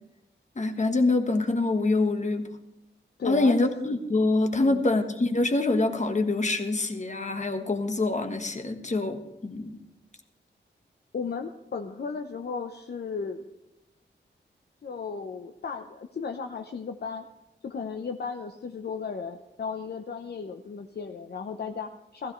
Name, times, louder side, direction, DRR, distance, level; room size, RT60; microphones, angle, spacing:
voice 1, 0.6-2.5 3.3-9.8, left 2 dB, 35° left, 6 dB, 1.4 m, -25 dB
voice 2, 3.2-3.6 4.5-4.8 11.1-13.4 14.8-17.2 17.6-22.3, left 5 dB, 55° left, 5 dB, 0.7 m, -35 dB
15.5 x 15.0 x 3.2 m, 0.92 s
wide cardioid pair, 80°, 20 cm